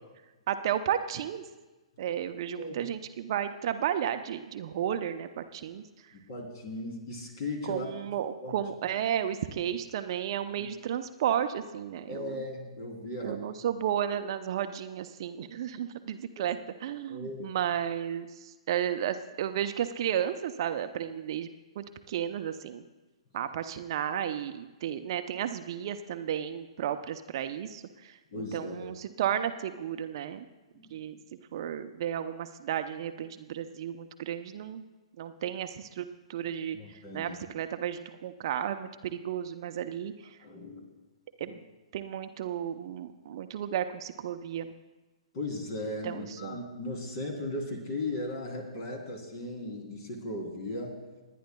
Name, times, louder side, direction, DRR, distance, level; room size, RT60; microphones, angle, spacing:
voice 1, 0.5-1.4 2.0-6.1 7.6-12.4 13.2-21.5 21.8-22.8 23.3-30.5 30.9-31.2 31.5-34.8 35.2-40.4 41.4-41.6 41.9-44.7 46.0-46.6, right 10 dB, 50° right, 9 dB, 0.7 m, -33 dB
voice 2, 6.1-7.9 8.4-8.5 12.1-13.4 16.4-16.5 17.1-17.5 28.3-28.8 30.7-30.9 36.7-37.4 40.4-40.8 45.3-51.0, left 2 dB, 45° left, 2 dB, 3.2 m, -37 dB
28.0 x 10.0 x 2.3 m, 1.2 s
figure-of-eight pair, 120°, 3 cm